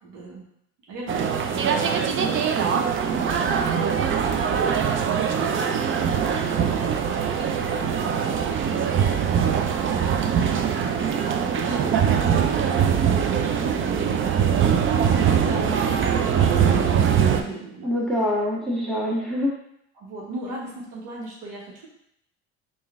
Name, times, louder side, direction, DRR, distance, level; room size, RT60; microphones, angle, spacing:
voice 1, 0.0-0.5 0.9-1.8 2.1-17.9 19.9-21.9, right 2 dB, 75° right, -4 dB, 1.2 m, -39 dB
sound 1, 1.1-17.4, right 7 dB, 40° right, 0.5 m, -22 dB
voice 2, 15.5-16.0 17.8-19.5, left 1 dB, ahead, -5 dB, 1.5 m, -26 dB
3.7 x 2.6 x 3.5 m, 0.75 s
supercardioid pair, 70°, 31 cm